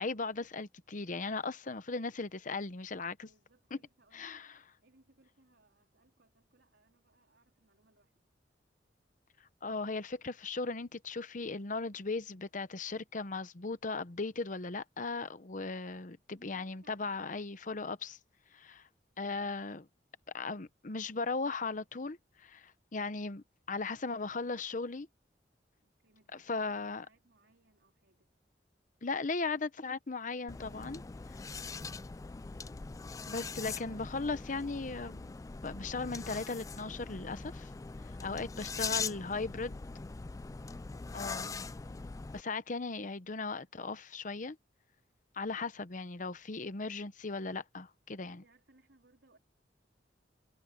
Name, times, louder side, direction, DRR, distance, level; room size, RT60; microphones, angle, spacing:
voice 1, 0.0-3.3 4.1-4.6 9.6-18.2 18.5-18.8 19.2-19.9 20.3-25.1 26.5-27.1 29.0-31.0 33.3-35.3 35.6-37.7 38.2-39.8 41.1-41.5 42.3-44.6 45.3-48.4, left 3 dB, 45° left, 0.9 m, -37 dB
voice 2, 3.2-4.4 4.8-8.3 16.4-17.5 25.8-26.7 27.0-28.3 48.2-49.4, right 2 dB, 80° right, 3.9 m, -68 dB
sound 1, 30.5-42.4, left 4 dB, 20° left, 0.3 m, -42 dB
head